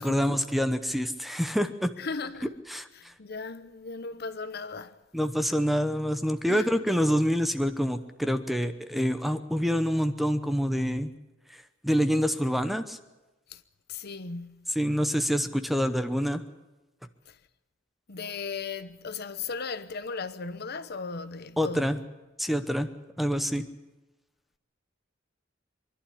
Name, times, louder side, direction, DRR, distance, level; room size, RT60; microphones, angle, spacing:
voice 1, 0.0-1.9 2.7-3.1 5.1-11.1 11.5-13.0 14.8-16.4 21.6-22.0 22.4-22.9 23.2-23.7, equal, ahead, 0.9 m, -26 dB
voice 2, 2.0-2.5 2.9-5.0 6.5-6.7 13.5-13.6 13.9-14.7 17.3-17.4 18.1-22.0, left 4 dB, 55° left, 0.9 m, -37 dB
24.5 x 11.5 x 10.0 m
head